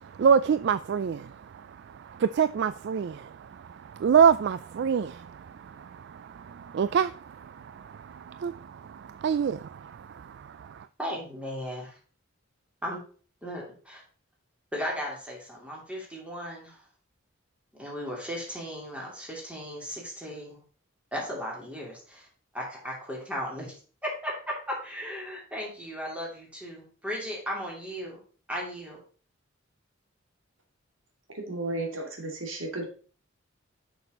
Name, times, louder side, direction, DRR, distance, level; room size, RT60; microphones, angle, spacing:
voice 1, 0.2-1.3 2.2-3.3 4.0-5.4 6.4-7.1 7.8-7.9 8.3-8.6 8.9-9.9, right 7 dB, 60° right, 0.3 m, -24 dB
voice 2, 11.0-12.0 12.8-13.0 13.4-14.0 14.7-16.8 17.8-20.6 21.1-22.3 22.5-23.7 24.0-28.2 28.5-29.0, equal, 5° right, 3.0 m, -36 dB
voice 3, 31.3-32.9, right 2 dB, 75° right, 2.5 m, -33 dB
6.8 x 6.2 x 5.2 m
head